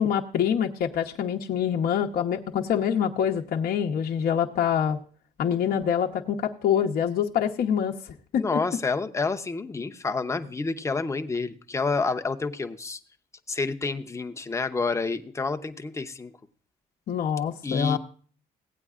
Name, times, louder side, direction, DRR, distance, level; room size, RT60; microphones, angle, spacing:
voice 1, 0.0-5.0 5.4-8.0 8.3-8.4 17.1-18.0, left 8 dB, 60° left, 2 dB, 0.9 m, -25 dB
voice 2, 8.3-13.0 13.5-16.3 17.6-18.0, left 4 dB, 15° left, 7 dB, 0.8 m, -29 dB
17.0 x 9.0 x 2.4 m, 0.43 s
cardioid pair, 110°, 17 cm